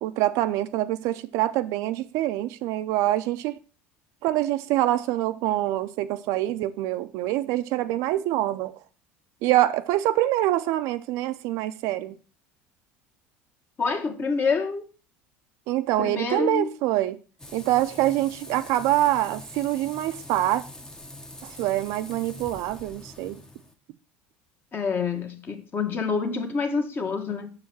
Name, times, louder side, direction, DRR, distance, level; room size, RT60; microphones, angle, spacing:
voice 1, 0.0-3.6 4.2-8.7 9.4-12.2 15.7-17.2 17.5-20.6 21.4-23.4, right 14 dB, 65° right, 0.6 m, -25 dB
voice 2, 13.8-14.8 16.0-16.7 24.7-27.5, left 5 dB, 35° left, 1.4 m, -27 dB
Frying (food), 17.4-23.7, left 1 dB, 10° left, 0.8 m, -44 dB
6.5 x 4.8 x 5.9 m
hypercardioid pair, 80°, 6 cm